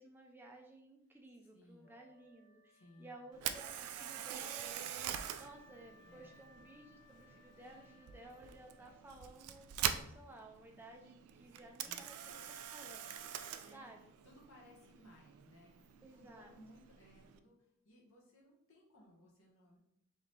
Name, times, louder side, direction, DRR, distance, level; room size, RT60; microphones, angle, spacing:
voice 1, 0.0-4.8 5.3-12.4 12.7-13.2 13.7-14.0 16.0-16.5, right 2 dB, 10° right, 1 dB, 0.4 m, -56 dB
voice 2, 1.5-2.0 2.7-3.2 6.0-6.5 11.5-11.6 11.8-12.5 13.2-19.8, equal, 65° left, -2 dB, 1.1 m, -62 dB
Wind instrument woodwind instrument, 1.8-9.4, left 2 dB, 15° left, 0.9 m, -66 dB
Camera, 3.3-17.4, right 10 dB, 85° right, 0.3 m, -45 dB
3.6 x 2.8 x 3.2 m, 0.76 s
head